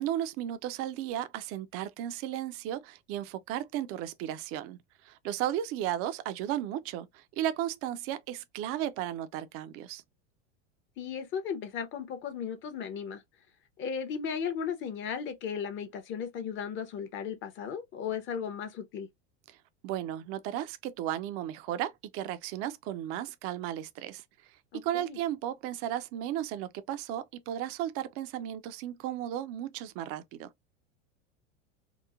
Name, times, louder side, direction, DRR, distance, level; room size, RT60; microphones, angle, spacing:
voice 1, 0.0-4.8 5.0-10.0 19.5-19.6 19.8-24.2 24.7-30.5, right 12 dB, 45° right, 0.4 m, -34 dB
voice 2, 11.0-13.2 13.8-19.1 24.7-25.2, left 7 dB, 35° left, 0.6 m, -36 dB
2.9 x 2.0 x 2.3 m
supercardioid pair, 125°, 34 cm